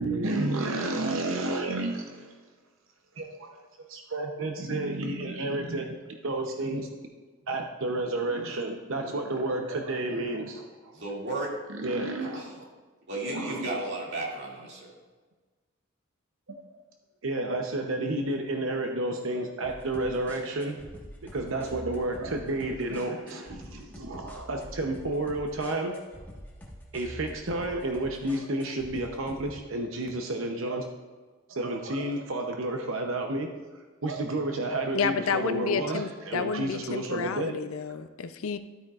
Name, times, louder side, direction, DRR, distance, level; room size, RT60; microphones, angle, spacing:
voice 1, 0.0-2.3 3.2-6.9 7.5-10.6 11.7-12.7 13.3-13.8 17.2-20.8 21.2-26.2 26.9-30.9 31.5-33.5 34.0-37.6, right 2 dB, 70° right, 3 dB, 0.8 m, -31 dB
voice 2, 10.9-11.5 12.2-12.5 13.1-14.9, right 2 dB, 55° right, -3 dB, 2.4 m, -34 dB
sound 1, 19.6-29.6, equal, 10° left, 1.4 m, -46 dB
voice 3, 34.9-38.6, left 6 dB, 85° left, 11 dB, 0.5 m, -30 dB
12.0 x 8.7 x 2.5 m, 1.4 s
head